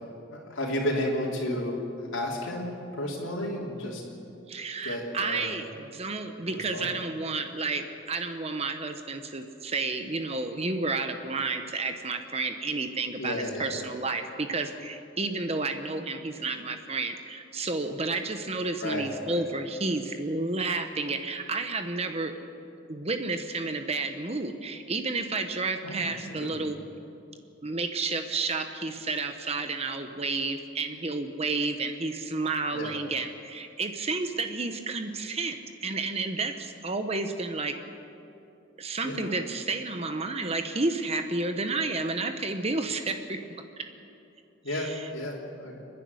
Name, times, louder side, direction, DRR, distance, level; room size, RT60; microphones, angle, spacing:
voice 1, 0.3-1.8 2.1-4.0 4.8-5.5 6.4-6.9 13.2-13.9 18.8-19.4 25.8-26.7 32.7-32.9 39.0-39.3 44.6-45.8, left 1 dB, 75° left, -3 dB, 3.3 m, -33 dB
voice 2, 4.5-22.3 22.9-26.8 27.6-35.6 35.8-37.8 38.8-43.6 44.7-45.1, right 3 dB, 30° right, 7 dB, 1.0 m, -31 dB
29.5 x 10.5 x 9.6 m, 2.8 s
head